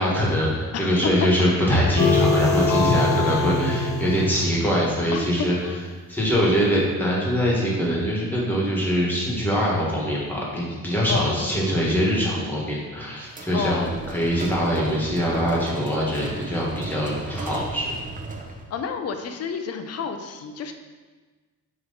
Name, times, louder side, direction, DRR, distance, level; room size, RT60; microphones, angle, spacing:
voice 1, 0.0-5.5 6.1-17.9, equal, 5° left, -5 dB, 1.5 m, -23 dB
voice 2, 0.7-1.1 3.2-3.5 5.1-5.9 11.1-11.6 13.5-14.0 17.0-17.5 18.7-20.7, left 6 dB, 45° left, 7 dB, 0.5 m, -31 dB
sound 1, 2.0-5.1, left 3 dB, 75° left, 1.3 m, -22 dB
sound 2, 13.3-18.7, right 2 dB, 25° right, 0.6 m, -35 dB
9.1 x 3.1 x 4.0 m, 1.4 s
cardioid pair, 150°, 34 cm